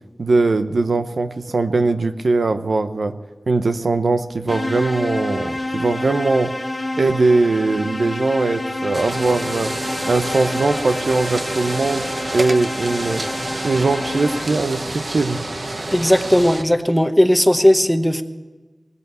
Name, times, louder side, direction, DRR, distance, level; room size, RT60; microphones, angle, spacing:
voice 1, 0.2-3.1 3.5-6.5 7.0-9.7 10.0-12.1 12.3-13.2 13.6-15.4, right 3 dB, 75° right, 9 dB, 0.8 m, -20 dB
sound 1, 4.5-14.8, left 1 dB, 30° left, 1.0 m, -28 dB
sound 2, 8.9-16.6, right 2 dB, 50° right, 1.3 m, -29 dB
voice 2, 15.9-18.2, equal, 5° left, 8 dB, 1.0 m, -16 dB
19.0 x 8.3 x 9.1 m, 1.2 s
wide cardioid pair, 75°, 0 cm